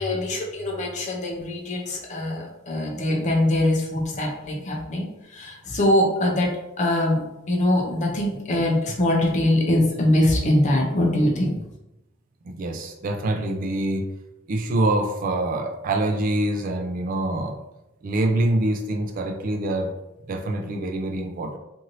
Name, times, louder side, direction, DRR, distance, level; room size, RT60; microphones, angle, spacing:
voice 1, 0.0-5.0 5.3-6.5 6.8-11.5, left 1 dB, 35° left, -1 dB, 0.5 m, -22 dB
voice 2, 12.4-14.1 14.5-17.6 18.0-19.9 20.3-21.6, right 1 dB, 40° right, 4 dB, 0.3 m, -25 dB
3.0 x 2.6 x 2.6 m, 0.91 s
head